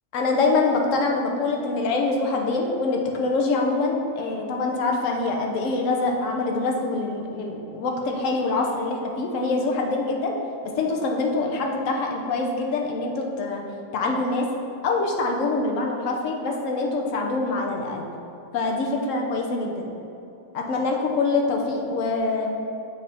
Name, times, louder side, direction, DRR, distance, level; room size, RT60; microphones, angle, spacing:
voice 1, 0.1-10.3 10.7-13.6 13.9-14.5 14.8-18.1 18.5-19.9 20.5-22.5, left 3 dB, 60° left, 1 dB, 1.0 m, -25 dB
7.6 x 3.5 x 4.1 m, 2.9 s
omnidirectional pair, 1.7 m